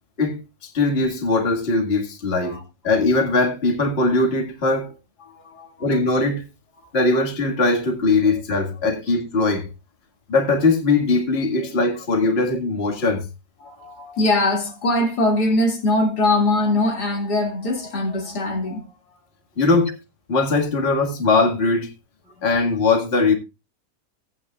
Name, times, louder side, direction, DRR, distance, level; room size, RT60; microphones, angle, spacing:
voice 1, 0.2-2.6 2.8-4.9 5.8-6.4 6.9-9.7 10.3-13.3 19.6-20.0 20.3-21.9 22.4-23.3, left 3 dB, 35° left, 2.1 m, -20 dB
voice 2, 5.2-5.9 13.6-18.9, left 2 dB, 70° left, 3.1 m, -22 dB
18.0 x 8.9 x 2.4 m
omnidirectional pair, 1.8 m